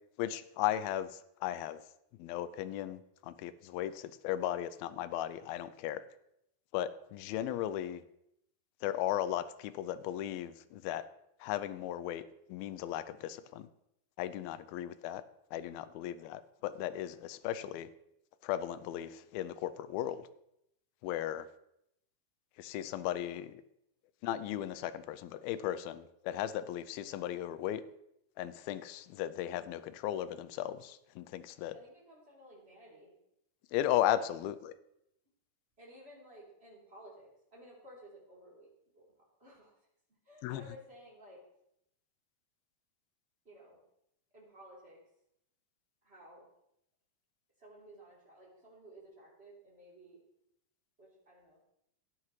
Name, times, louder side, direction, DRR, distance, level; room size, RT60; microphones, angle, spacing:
voice 1, 0.2-1.8 2.2-6.0 6.7-8.0 8.8-11.0 11.4-12.2 12.5-13.7 14.2-15.2 15.5-17.9 18.4-20.2 21.0-21.5 22.6-23.6 24.2-27.8 28.4-31.8 33.7-34.7 40.4-40.6, left 12 dB, 85° left, 13 dB, 2.4 m, -36 dB
voice 2, 15.7-16.0 31.7-33.1 34.2-34.4 35.8-38.7 38.9-39.0 39.4-39.8 40.2-41.4 43.4-43.8 44.3-45.0 46.0-46.5 47.6-50.2 51.0-51.7, equal, 15° right, -4 dB, 3.1 m, -55 dB
14.0 x 10.0 x 3.1 m, 0.78 s
omnidirectional pair, 4.3 m